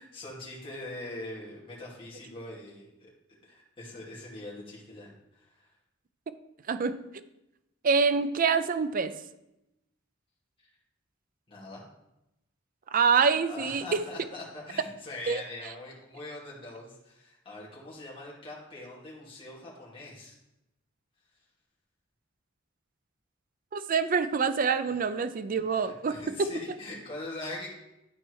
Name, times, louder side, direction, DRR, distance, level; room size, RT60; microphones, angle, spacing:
voice 1, 0.0-3.1 3.4-5.7 10.6-10.7 11.5-11.8 13.5-20.4 25.7-27.7, left 2 dB, 30° left, -6 dB, 2.6 m, -42 dB
voice 2, 7.8-9.1 12.9-14.0 15.3-15.4 23.7-26.3, right 5 dB, 45° right, 12 dB, 0.5 m, -26 dB
12.0 x 4.4 x 4.7 m, 0.90 s
head